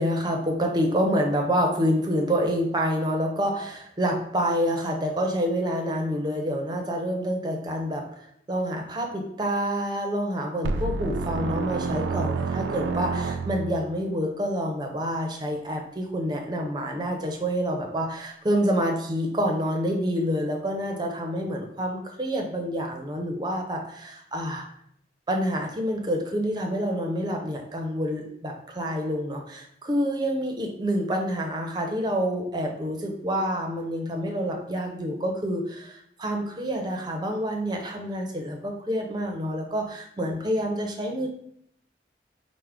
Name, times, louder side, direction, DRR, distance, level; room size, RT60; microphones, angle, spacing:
voice 1, 0.0-24.7 25.3-41.3, equal, 25° right, 2 dB, 0.5 m, -27 dB
sound 1, 10.6-13.9, right 4 dB, 90° right, 0.3 m, -28 dB
4.6 x 2.1 x 3.4 m, 0.69 s
head